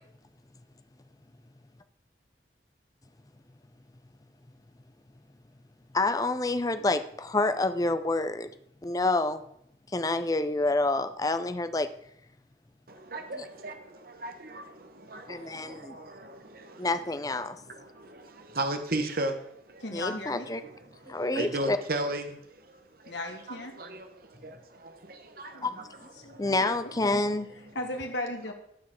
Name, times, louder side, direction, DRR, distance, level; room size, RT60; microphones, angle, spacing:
voice 1, 5.9-8.5 8.8-9.4 9.9-11.9 13.4-13.5 15.3-16.0 16.8-17.6 19.9-20.6 21.1-21.8 25.6-26.1 26.4-27.5, left 2 dB, 20° left, 10 dB, 0.6 m, -28 dB
voice 2, 12.9-16.9 17.7-19.8 20.6-20.7 21.1-23.1 23.8-25.7 26.2-26.4, right 1 dB, 55° right, 6 dB, 1.2 m, -36 dB
voice 3, 19.8-20.5 23.1-23.7 25.5-25.7 26.2-27.2 27.7-28.5, left 1 dB, 80° left, 3 dB, 1.9 m, -36 dB
12.5 x 4.6 x 7.5 m, 0.74 s
head